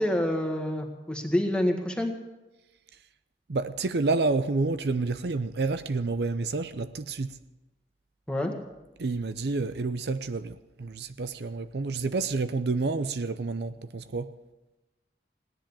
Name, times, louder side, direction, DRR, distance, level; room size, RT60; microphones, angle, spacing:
voice 1, 0.0-2.1 8.3-8.5, left 1 dB, 5° left, 1.7 m, -27 dB
voice 2, 3.5-7.4 9.0-14.3, right 3 dB, 70° right, 0.6 m, -29 dB
17.0 x 10.5 x 7.1 m
head